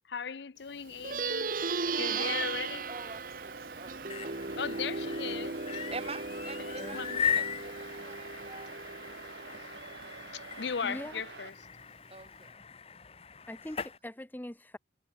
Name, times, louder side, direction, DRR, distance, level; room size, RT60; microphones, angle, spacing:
voice 1, 0.1-1.6 2.0-2.8 4.5-5.9 6.6-7.5 10.3-11.5, left 6 dB, 75° left, 0.6 m, -38 dB
Plucked string instrument, 0.9-10.6, right 4 dB, 50° right, 1.3 m, -37 dB
sound 1, 1.8-11.5, right 4 dB, 70° right, 1.3 m, -48 dB
voice 2, 2.2-2.5 2.9-4.6 5.9-8.8 12.1-12.6, right 3 dB, 30° right, 2.1 m, -46 dB
sound 2, 3.8-14.0, left 7 dB, 35° left, 1.2 m, -39 dB
voice 3, 10.8-11.1 13.5-14.8, left 1 dB, 10° left, 0.6 m, -42 dB
head